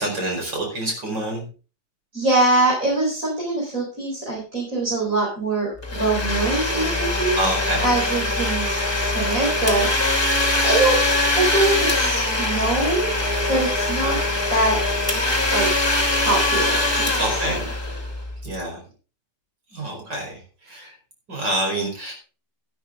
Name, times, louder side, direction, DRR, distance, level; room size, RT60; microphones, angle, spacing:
voice 1, 0.0-1.4 7.4-7.9 14.0-14.2 17.1-17.7 18.4-18.8 19.7-20.9 21.3-22.1, right 1 dB, 75° right, 1 dB, 5.5 m, -27 dB
voice 2, 2.1-7.4 7.8-8.7 9.1-10.3 10.6-11.0 11.3-13.1 13.5-14.2 14.5-14.8 15.5-15.7 16.2-17.6, right 2 dB, 45° right, -4 dB, 5.0 m, -23 dB
Domestic sounds home sounds, 5.8-18.4, left 2 dB, 15° left, 2.3 m, -22 dB
11.5 x 11.5 x 3.8 m, 0.35 s
omnidirectional pair, 1.9 m